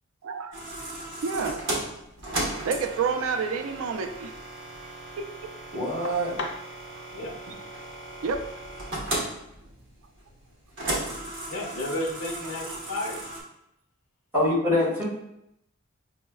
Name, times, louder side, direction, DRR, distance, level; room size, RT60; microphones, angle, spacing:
voice 1, 0.2-0.6 1.2-1.6 2.6-4.3 4.8-4.9 5.2-5.3 7.0-7.1 8.2-8.4 12.7-12.8, right 5 dB, 90° right, 6 dB, 0.4 m, -29 dB
sound 1, 0.5-13.4, right 1 dB, 60° right, 1.0 m, -36 dB
voice 2, 5.7-6.3 14.3-15.1, left 1 dB, 10° right, -10 dB, 1.3 m, -24 dB
voice 3, 11.5-13.2, left 1 dB, 85° left, 1 dB, 0.6 m, -32 dB
6.1 x 2.1 x 2.2 m, 0.82 s
head